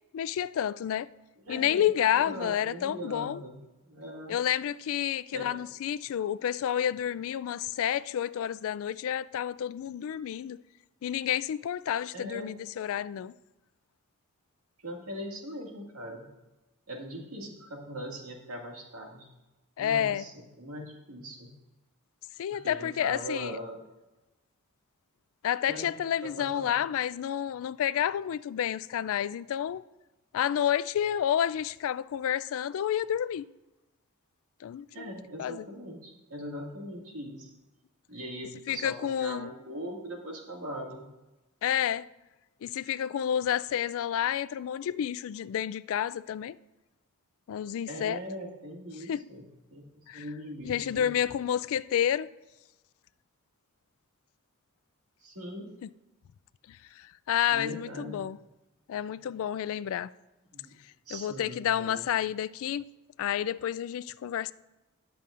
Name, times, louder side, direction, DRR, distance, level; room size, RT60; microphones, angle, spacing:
voice 1, 0.1-1.1 1.5-3.4 4.3-10.6 11.0-13.3 19.8-20.2 22.4-23.6 25.4-29.9 30.3-33.5 34.6-35.1 35.4-35.7 38.7-39.5 41.6-42.1 42.6-46.6 47.5-48.2 49.1-49.2 50.1-50.2 50.6-52.3 56.7-58.4 58.9-60.1 61.1-62.8 63.2-64.5, left 10 dB, 65° left, 0.3 m, -30 dB
voice 2, 1.4-3.6 3.9-4.4 5.3-5.5 12.1-12.5 14.8-16.3 16.9-19.3 19.8-21.6 22.5-23.8 25.7-25.9 26.2-26.7 34.9-37.5 38.1-41.1 47.9-51.3 55.2-55.7 57.5-58.3 60.5-60.8 61.1-62.1, equal, 75° right, 2.0 m, -41 dB
19.5 x 7.0 x 2.5 m
head